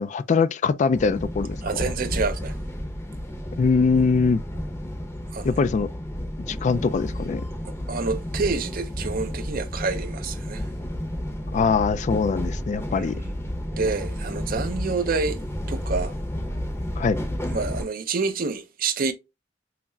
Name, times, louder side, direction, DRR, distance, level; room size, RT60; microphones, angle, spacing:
voice 1, 0.0-1.6 3.6-4.4 5.4-5.9 6.4-7.4 11.5-13.1 17.0-17.2, left 5 dB, 40° left, 0.3 m, -22 dB
sound 1, 1.0-17.8, equal, 15° left, 0.7 m, -31 dB
voice 2, 1.6-2.5 5.3-5.5 7.9-10.6 12.9-13.3 13.8-15.4 15.7-16.1 17.5-19.1, right 4 dB, 50° right, 0.5 m, -28 dB
5.7 x 2.1 x 2.6 m
head